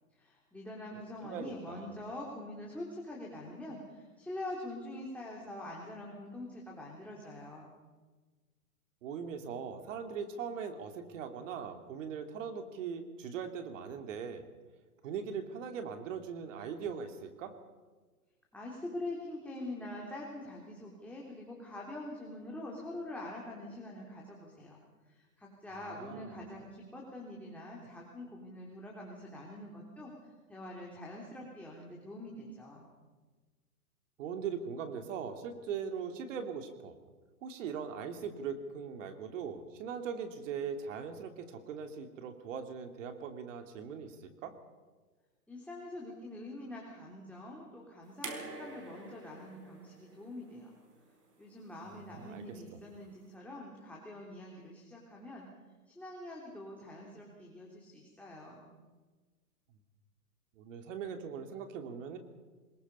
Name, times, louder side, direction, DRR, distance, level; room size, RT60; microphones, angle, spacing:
voice 1, 0.1-7.7 18.5-24.8 25.1-32.9 45.5-50.7 51.4-55.5 55.9-58.7, left 1 dB, 5° left, -3 dB, 3.4 m, -45 dB
voice 2, 1.2-2.0 9.0-14.4 15.0-17.5 25.9-26.4 34.2-36.9 37.4-44.5 51.8-52.4 52.7-52.8 60.6-62.2, right 6 dB, 55° right, 7 dB, 2.7 m, -40 dB
sound 1, 48.2-51.4 52.6-52.7, right 3 dB, 80° right, 5.0 m, -47 dB
24.5 x 21.0 x 5.5 m, 1.3 s
hypercardioid pair, 130°, 46 cm